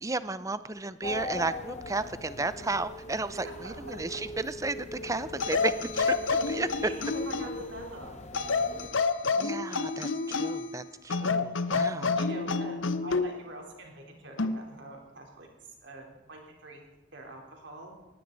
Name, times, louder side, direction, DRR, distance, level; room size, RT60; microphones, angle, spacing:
voice 1, 0.0-6.7 9.3-12.2, right 3 dB, 15° right, 14 dB, 0.5 m, -33 dB
sound 1, 1.0-8.9, left 1 dB, 35° left, 1.0 m, -41 dB
voice 2, 3.3-4.2 6.8-8.2 11.8-15.5 15.8-16.8 17.1-17.9, right 2 dB, 60° right, 0 dB, 3.8 m, -45 dB
sound 2, 5.4-7.6 8.3-10.7 11.1-13.3 14.4-14.6, left 4 dB, 75° left, 0.8 m, -29 dB
20.0 x 16.0 x 4.0 m, 1.1 s
head